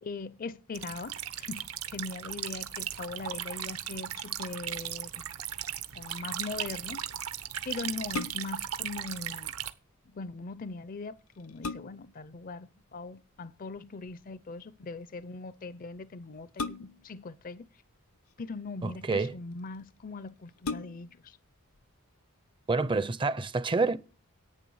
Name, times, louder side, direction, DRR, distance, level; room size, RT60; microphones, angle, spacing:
voice 1, 0.0-5.2 5.9-7.1 7.6-9.5 10.1-17.7 18.4-21.4, left 3 dB, 40° left, 0.5 m, -40 dB
sound 1, 0.7-9.7, right 11 dB, 80° right, 1.0 m, -37 dB
sound 2, 8.1-8.7 10.7-10.8 11.3-12.2 13.7-14.1 16.6-17.2 18.1-18.8 19.6-19.7 20.0-20.1 20.6-21.3 21.7-21.8, left 4 dB, 75° left, 0.7 m, -38 dB
voice 2, 18.8-19.3 22.7-24.0, right 3 dB, 20° right, 0.5 m, -28 dB
11.0 x 8.8 x 6.2 m
head